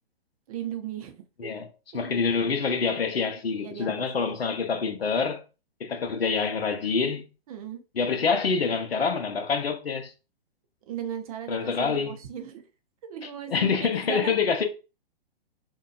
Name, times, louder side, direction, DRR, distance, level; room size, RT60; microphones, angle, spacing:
voice 1, 0.5-1.5 2.0-2.1 3.5-4.6 7.5-7.8 10.9-12.7 13.0-14.4, right 9 dB, 40° right, 0.5 m, -37 dB
voice 2, 1.9-5.4 5.8-7.3 8.0-10.1 11.5-12.1 13.5-14.6, left 5 dB, 85° left, 0.6 m, -26 dB
2.7 x 2.2 x 2.3 m
figure-of-eight pair, 120°, 30 cm